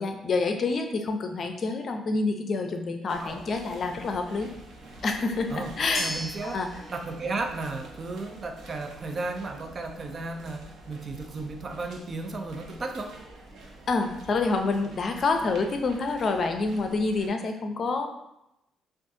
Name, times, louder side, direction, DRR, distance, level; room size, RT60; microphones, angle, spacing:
voice 1, 0.0-4.5 5.0-6.7 13.9-18.1, left 3 dB, 50° left, 5 dB, 0.6 m, -27 dB
sound 1, 3.1-17.3, right 2 dB, 70° right, 0.9 m, -47 dB
voice 2, 5.5-6.6 6.9-13.1, right 3 dB, 40° right, 5 dB, 0.5 m, -34 dB
sound 2, 5.9-14.3, equal, 5° right, 1.4 m, -44 dB
7.1 x 2.5 x 2.7 m, 0.86 s
cardioid pair, 90°, 0 cm